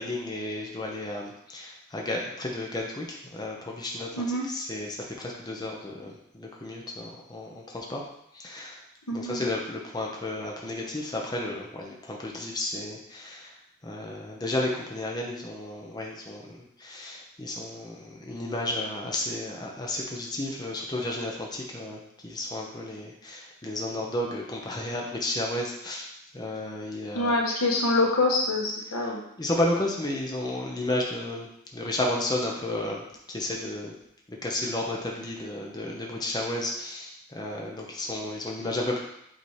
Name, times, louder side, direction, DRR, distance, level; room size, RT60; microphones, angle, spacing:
voice 1, 0.0-8.1 8.3-8.8 9.1-13.6 13.8-26.1 26.3-27.3 29.4-33.9 34.3-39.0, left 1 dB, 20° left, -1 dB, 0.8 m, -32 dB
voice 2, 4.1-4.4 9.1-9.5 27.1-29.2, left 2 dB, 90° left, -1 dB, 1.3 m, -25 dB
6.9 x 2.9 x 4.8 m, 0.77 s
head